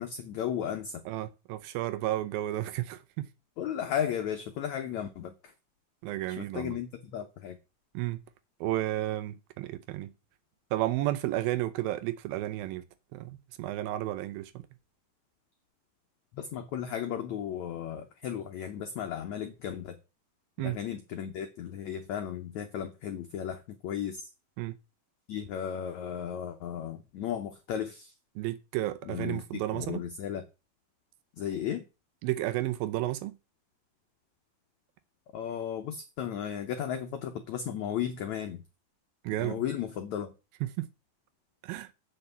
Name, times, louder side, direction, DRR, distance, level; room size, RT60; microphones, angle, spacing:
voice 1, 0.0-1.0 3.6-5.5 6.3-7.6 16.3-20.0 20.6-24.3 25.3-28.1 29.1-29.4 29.7-30.4 31.4-31.9 35.3-38.6 39.4-40.3, left 9 dB, 85° left, 1.6 m, -35 dB
voice 2, 1.1-3.3 6.0-6.7 7.9-8.2 8.6-10.1 10.7-12.8 13.1-14.5 20.6-20.8 24.6-24.8 28.4-30.0 32.2-33.3 39.2-39.6 40.6-40.9 41.6-41.9, right 15 dB, 80° right, 2.3 m, -32 dB
8.0 x 5.8 x 6.8 m
omnidirectional pair, 4.5 m